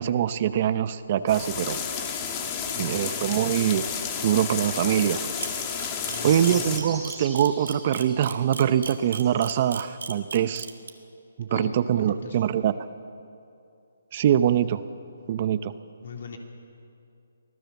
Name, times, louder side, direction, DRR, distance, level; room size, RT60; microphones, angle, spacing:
voice 1, 0.0-1.8 2.8-3.9 4.2-5.2 6.2-10.7 11.4-12.7 14.1-14.8 15.3-15.7, right 10 dB, 35° right, 13 dB, 0.7 m, -23 dB
sound 1, 1.3-6.8, left 7 dB, 25° left, 2.0 m, -31 dB
sound 2, 1.5-9.9, right 3 dB, 5° right, 3.9 m, -46 dB
voice 2, 2.7-3.0 6.1-6.6 11.5-12.4 16.0-16.4, left 4 dB, 55° left, 2 dB, 3.4 m, -39 dB
Camera, 5.4-10.9, right 5 dB, 80° right, 2.3 m, -35 dB
25.0 x 17.0 x 7.2 m, 2.6 s
hypercardioid pair, 155°, 0 cm